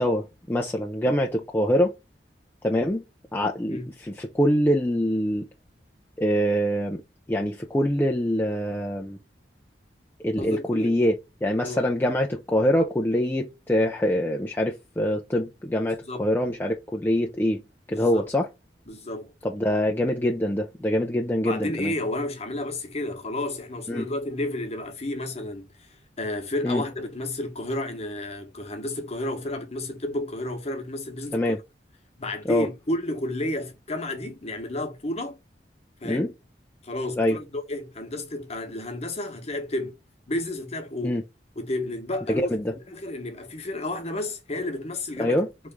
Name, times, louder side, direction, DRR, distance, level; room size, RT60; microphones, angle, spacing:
voice 1, 0.0-1.9 2.6-3.0 3.3-5.5 6.2-7.0 7.3-9.2 10.2-11.1 11.4-17.6 17.9-18.5 19.4-21.9 23.9-24.0 26.6-26.8 31.3-31.6 32.5-32.7 36.0-36.3 37.2-37.4 41.0-41.2 42.3-42.7 45.2-45.5, equal, 10° left, 0.4 m, -24 dB
voice 2, 10.4-11.0 11.6-11.8 15.9-16.3 17.9-18.3 18.9-19.3 21.4-31.5 32.2-35.4 36.0-36.3 36.8-40.0 40.3-41.2 41.6-42.5 42.9-45.4, left 1 dB, 35° left, 1.0 m, -31 dB
3.4 x 3.1 x 3.4 m
head